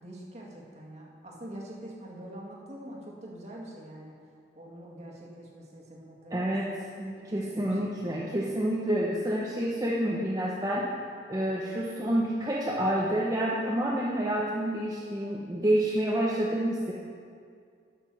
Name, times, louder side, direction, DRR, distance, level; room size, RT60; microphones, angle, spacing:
voice 1, 0.0-4.1 4.6-6.8 7.2-8.0, right 1 dB, 35° right, -2 dB, 1.8 m, -45 dB
voice 2, 6.3-10.9 11.3-16.9, right 1 dB, 20° right, -5 dB, 0.9 m, -28 dB
12.0 x 6.0 x 6.1 m, 2.3 s
head